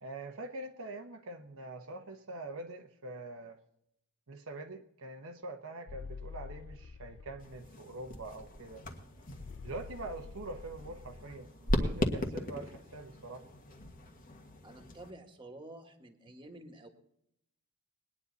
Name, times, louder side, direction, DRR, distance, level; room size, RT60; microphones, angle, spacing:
voice 1, 0.0-3.6 4.3-8.8 9.6-13.4, right 2 dB, 70° right, 4 dB, 1.0 m, -44 dB
sound 1, 5.9-7.7 9.3-11.3, left 5 dB, 65° left, 0.6 m, -47 dB
sound 2, 7.4-15.1, left 1 dB, 40° left, 1.5 m, -38 dB
voice 2, 14.6-16.9, right 1 dB, 20° right, 4 dB, 1.7 m, -50 dB
20.5 x 9.9 x 4.0 m, 0.77 s
head